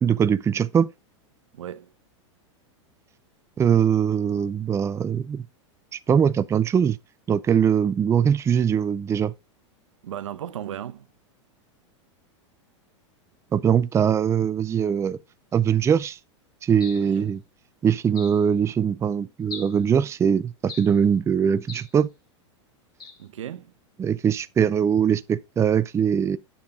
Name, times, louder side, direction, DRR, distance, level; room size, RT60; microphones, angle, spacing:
voice 1, 0.0-0.9 3.6-5.4 5.9-7.0 7.3-9.3 13.5-15.2 15.5-16.2 16.6-17.4 17.8-22.1 24.0-26.4, right 8 dB, 20° right, 0.5 m, -21 dB
voice 2, 1.5-1.9 10.0-11.1 17.0-17.3 23.2-23.7, right 10 dB, 80° right, 0.9 m, -36 dB
sound 1, 16.8-17.2 18.1-18.4 19.5-19.8 20.7-21.0 21.7-22.0 23.0-23.2, left 4 dB, 25° left, 3.8 m, -40 dB
9.4 x 7.2 x 3.7 m
hypercardioid pair, 110°, 16 cm